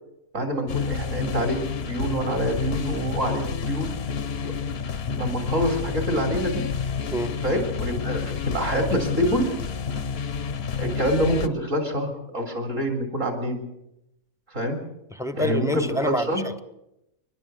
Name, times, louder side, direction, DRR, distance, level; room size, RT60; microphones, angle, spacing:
voice 1, 0.3-1.6 1.9-3.9 4.4-4.5 5.2-6.6 7.4-9.4 10.7-13.6 14.5-14.8 15.4-16.4, equal, 55° right, 3 dB, 4.1 m, -26 dB
sound 1, 0.7-11.5, left 6 dB, 50° left, 1.0 m, -29 dB
voice 2, 15.1-16.6, left 1 dB, 5° right, 11 dB, 0.8 m, -28 dB
29.5 x 12.0 x 8.1 m, 0.86 s
omnidirectional pair, 1.5 m